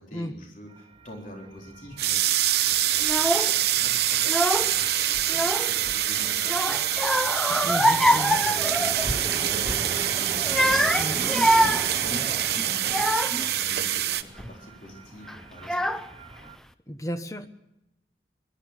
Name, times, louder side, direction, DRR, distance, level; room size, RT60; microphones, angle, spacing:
voice 1, 0.0-2.3 2.7-6.8 8.9-15.9, equal, 50° left, 0 dB, 3.9 m, -44 dB
sound 1, 0.7-16.6, right 3 dB, 30° right, 0.8 m, -40 dB
Sink on off, 2.0-14.2, right 12 dB, 65° right, 0.9 m, -25 dB
Child speech kid speaking / Crying sobbing, 3.0-3.5 4.2-4.8 5.1-6.0 6.4-9.3 9.6-9.9 10.4-13.5 14.1-14.5 15.3-15.4 15.6-16.3, equal, 5° left, 0.6 m, -25 dB
voice 2, 7.6-8.4 11.0-11.2 16.9-17.5, equal, 20° left, 9 dB, 1.1 m, -33 dB
21.5 x 12.5 x 9.7 m, 0.88 s
head